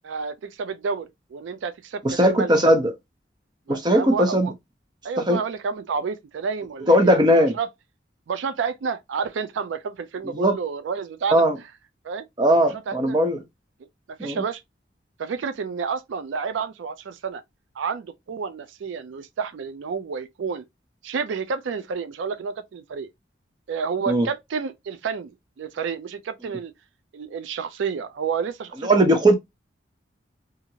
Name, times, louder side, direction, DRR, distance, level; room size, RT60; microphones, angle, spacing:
voice 1, 0.0-2.6 3.7-4.5 5.0-7.7 8.3-11.4 12.0-12.3 12.9-13.2 14.2-14.6 15.2-17.4 17.8-20.6 21.0-23.1 23.7-26.7 27.1-29.1, right 5 dB, 85° right, 0.4 m, -30 dB
voice 2, 2.0-2.9 3.7-4.5 5.3-5.4 6.9-7.6 10.3-10.6 11.3-11.6 12.4-13.4 14.2-14.4 24.1-24.3 28.8-29.3, equal, 25° right, 0.6 m, -18 dB
2.8 x 2.4 x 2.7 m
head